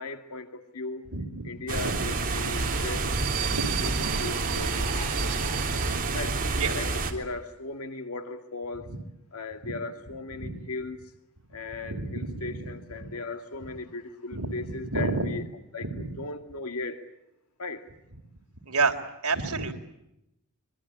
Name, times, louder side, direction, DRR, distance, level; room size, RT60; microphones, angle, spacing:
voice 1, 0.0-1.1 1.4-3.9 4.2-5.3 6.1-6.4 6.7-8.9 9.3-11.0 11.5-15.4 15.7-15.9 16.2-17.0 17.6-17.9, left 3 dB, 80° left, 7 dB, 2.1 m, -37 dB
voice 2, 1.1-1.4 1.7-1.9 2.4-2.7 3.1-4.2 4.5-4.6 5.8-6.2 6.4-6.7 9.6-9.7 10.4-10.6 11.9-12.7 13.0-13.1 14.3-15.4 15.8-16.1 18.7-19.0 19.2-19.7, right 3 dB, 70° right, 4 dB, 3.5 m, -31 dB
sound 1, 1.7-7.1, right 3 dB, 40° right, 3.4 m, -28 dB
sound 2, 2.3-6.7 7.0-7.1, right 11 dB, 90° right, 1.7 m, -37 dB
25.0 x 23.5 x 8.7 m, 0.86 s
head